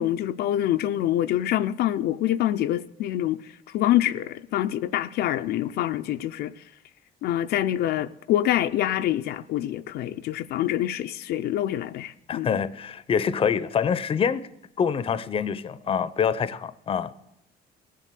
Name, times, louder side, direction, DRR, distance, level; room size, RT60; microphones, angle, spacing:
voice 1, 0.0-6.5 7.2-12.6, left 12 dB, 75° left, 0.5 m, -26 dB
voice 2, 12.3-14.5 14.8-17.1, left 7 dB, 35° left, 0.6 m, -25 dB
17.0 x 7.4 x 8.3 m
cardioid pair, 110°, 17 cm